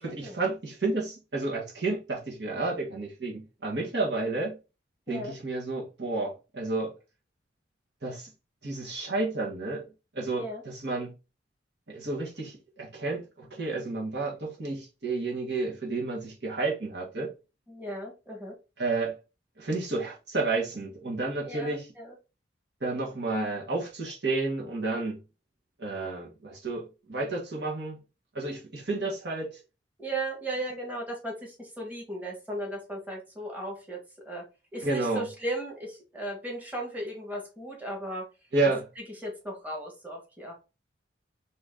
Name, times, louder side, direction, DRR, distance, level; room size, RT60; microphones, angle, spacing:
voice 1, 0.0-4.6 5.1-6.9 8.0-8.3 8.6-9.9 10.1-11.1 11.9-17.3 18.8-19.2 19.6-21.9 22.8-25.2 25.8-28.0 28.3-29.5 34.8-35.3 38.5-38.8, right 3 dB, 65° right, 1.6 m, -31 dB
voice 2, 17.7-18.5 21.4-22.1 30.0-34.4 34.7-38.2 39.2-40.5, right 1 dB, 10° right, 1.6 m, -36 dB
4.1 x 3.0 x 3.8 m
head